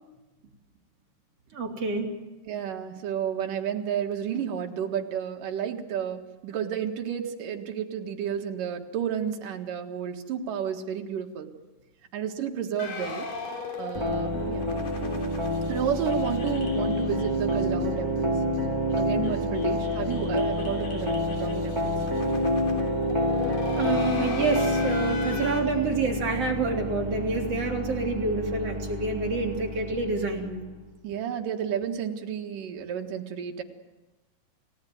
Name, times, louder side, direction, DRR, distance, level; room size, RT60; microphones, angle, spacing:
voice 1, 1.5-2.1 23.7-30.5, right 3 dB, 50° right, 1 dB, 4.4 m, -28 dB
voice 2, 2.4-11.5 12.1-13.3 13.8-14.7 15.7-18.4 19.0-22.1 31.0-33.6, right 8 dB, 80° right, 3 dB, 3.4 m, -31 dB
sound 1, 12.8-17.9 18.2-18.3 18.5-18.6 18.9-25.6, left 4 dB, 90° left, 5.3 m, -39 dB
sound 2, 13.9-30.7, left 1 dB, 10° right, 3.9 m, -28 dB
30.0 x 18.0 x 9.3 m, 1.1 s
omnidirectional pair, 3.7 m